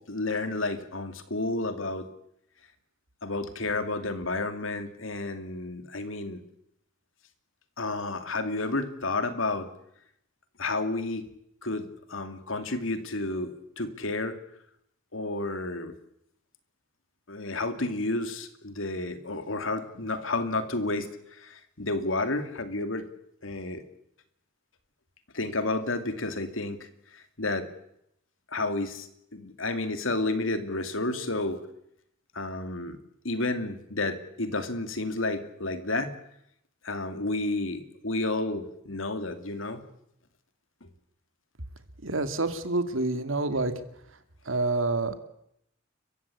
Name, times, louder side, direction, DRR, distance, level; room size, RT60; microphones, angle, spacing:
voice 1, 0.1-2.1 3.2-6.4 7.8-9.7 10.6-11.2 11.6-13.5 13.8-14.4 15.1-15.9 17.3-21.1 21.4-21.5 21.8-23.1 23.4-23.8 25.3-26.8 27.4-27.7 28.5-29.1 29.3-31.6 32.3-33.0 33.2-36.1 36.8-39.8 40.8-40.9, left 2 dB, 80° left, 9 dB, 2.5 m, -31 dB
voice 2, 42.0-43.7 44.5-45.2, right 2 dB, 90° right, 9 dB, 2.4 m, -27 dB
30.0 x 15.5 x 8.6 m, 0.76 s
head